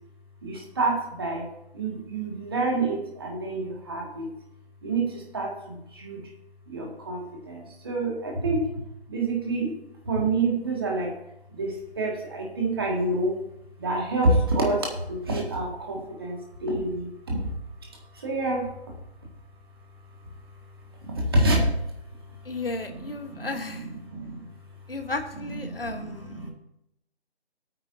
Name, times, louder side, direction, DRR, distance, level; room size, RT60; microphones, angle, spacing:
voice 1, 0.4-1.4 1.7-4.3 4.8-6.2 6.7-8.6 9.1-9.7 10.1-11.1 11.5-13.3 13.8-17.5 18.1-18.7 21.1-21.7 22.8-24.4 25.3-26.5, right 2 dB, 20° right, -1 dB, 1.9 m, -28 dB
voice 2, 22.5-23.9 24.9-26.5, left 3 dB, 55° left, 7 dB, 1.3 m, -34 dB
18.0 x 9.0 x 2.7 m, 0.81 s
figure-of-eight pair, 160°, 33 cm